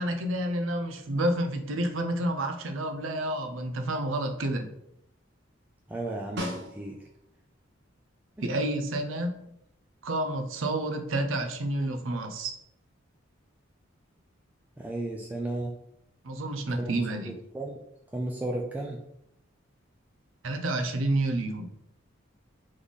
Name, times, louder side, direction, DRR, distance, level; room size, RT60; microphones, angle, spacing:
voice 1, 0.0-4.7 8.4-9.4 10.0-12.5 16.2-17.3 20.4-21.7, right 1 dB, 75° right, 6 dB, 0.6 m, -29 dB
voice 2, 5.9-7.0 14.8-15.7 16.8-16.9 17.3-17.8 18.1-19.0, right 2 dB, 10° right, -1 dB, 0.4 m, -34 dB
Snare drum, 6.4-7.3 11.7-11.8, equal, 60° right, 0.9 m, -36 dB
4.0 x 3.2 x 3.6 m, 0.77 s
head